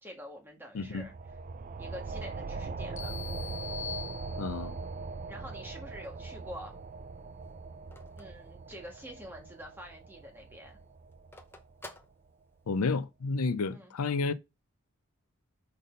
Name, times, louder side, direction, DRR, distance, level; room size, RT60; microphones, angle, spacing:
voice 1, 0.0-1.1 1.8-3.1 5.3-6.8 8.2-10.8 13.7-13.9, equal, 10° right, 1.8 m, -46 dB
voice 2, 0.7-1.1 4.4-4.7 12.7-14.3, left 4 dB, 80° left, 0.5 m, -31 dB
sound 1, 0.8-12.0, right 4 dB, 40° right, 0.4 m, -41 dB
sound 2, 3.0-4.8, left 8 dB, 35° left, 0.5 m, -42 dB
Telephone, 5.9-9.3 9.7-9.8 10.0-12.9, left 1 dB, 10° left, 0.8 m, -53 dB
5.2 x 4.2 x 5.2 m
head